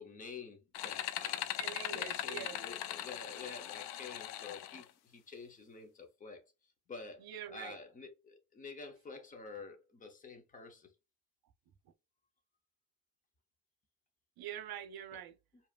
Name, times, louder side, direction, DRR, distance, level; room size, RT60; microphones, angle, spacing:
voice 1, 0.0-1.5 1.9-6.4 6.9-7.2 7.5-10.9, left 4 dB, 20° left, 0.8 m, -49 dB
sound 1, 0.7-4.8, left 12 dB, 90° left, 0.6 m, -40 dB
voice 2, 1.6-2.6 7.2-7.8 14.4-15.3, right 10 dB, 70° right, 0.9 m, -44 dB
4.8 x 2.8 x 2.4 m
cardioid pair, 175°, 37 cm